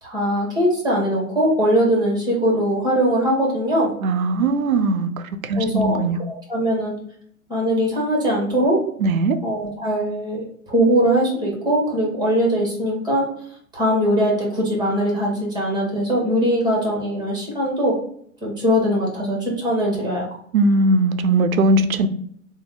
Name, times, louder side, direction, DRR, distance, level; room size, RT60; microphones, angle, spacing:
voice 1, 0.0-3.9 5.6-6.0 6.5-6.9 7.5-8.8 9.4-13.3 13.7-17.9 18.4-20.2, equal, 10° right, -3 dB, 1.5 m, -21 dB
voice 2, 4.0-5.1 5.4-6.2 9.0-9.4 20.5-22.1, right 2 dB, 75° right, 9 dB, 0.6 m, -19 dB
3.5 x 2.3 x 3.8 m, 0.64 s
figure-of-eight pair, 110°, 42 cm